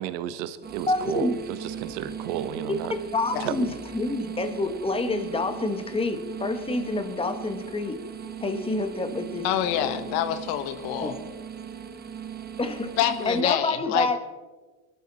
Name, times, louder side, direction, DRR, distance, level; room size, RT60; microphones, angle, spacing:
voice 1, 0.0-2.9 3.4-3.7, right 11 dB, 65° right, 13 dB, 1.3 m, -33 dB
sound 1, 0.6-13.4, right 7 dB, 20° right, 1.3 m, -38 dB
voice 2, 0.9-1.4 2.6-2.8 3.1-8.0 8.4-9.9 11.0-11.1 12.6-14.2, left 2 dB, 15° left, 8 dB, 1.6 m, -28 dB
voice 3, 9.4-11.2 13.0-14.2, left 11 dB, 70° left, 10 dB, 1.7 m, -27 dB
22.5 x 13.0 x 4.2 m, 1.3 s
supercardioid pair, 125°, 43 cm